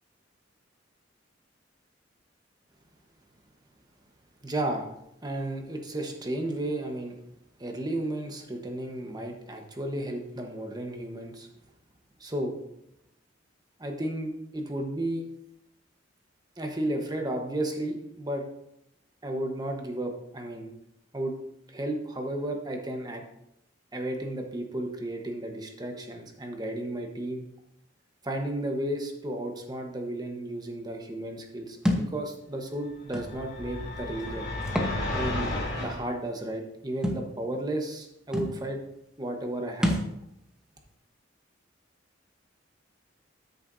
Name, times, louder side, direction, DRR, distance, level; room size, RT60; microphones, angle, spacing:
voice 1, 4.4-4.9 5.2-7.2 7.6-11.5 12.2-12.6 13.8-15.3 16.6-18.5 19.2-20.7 21.1-21.4 21.7-23.2 23.9-27.5 28.2-34.5 35.1-38.8 39.2-40.0, right 1 dB, 20° right, 3 dB, 1.2 m, -33 dB
Thump thud, 31.9-32.1 33.1-33.3 34.6-35.0 35.4-35.5 37.0-37.2 38.0-38.1 38.3-38.6 39.8-40.1, equal, 5° right, 1.0 m, -27 dB
sound 1, 33.1-36.0, left 2 dB, 60° left, 2.9 m, -32 dB
13.0 x 6.7 x 2.7 m, 0.80 s
head